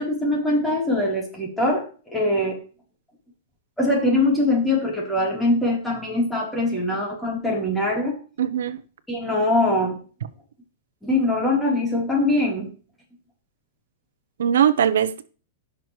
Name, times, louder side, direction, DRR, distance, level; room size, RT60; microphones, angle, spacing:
voice 1, 0.0-2.6 3.8-8.2 9.1-10.0 11.0-12.7, left 2 dB, 5° left, 3.6 m, -22 dB
voice 2, 8.4-8.8 14.4-15.2, right 9 dB, 85° right, 0.8 m, -20 dB
15.5 x 6.1 x 3.2 m
supercardioid pair, 155°, 0 cm